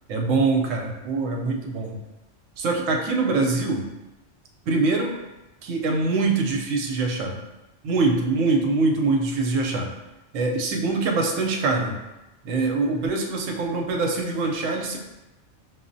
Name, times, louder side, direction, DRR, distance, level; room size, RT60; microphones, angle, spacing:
voice 1, 0.1-2.0 2.6-3.9 4.7-5.2 5.6-7.4 7.8-9.9 10.3-12.0 12.4-15.0, right 3 dB, 85° right, 1 dB, 1.0 m, -24 dB
5.9 x 2.0 x 2.6 m, 1.0 s
omnidirectional pair, 1.3 m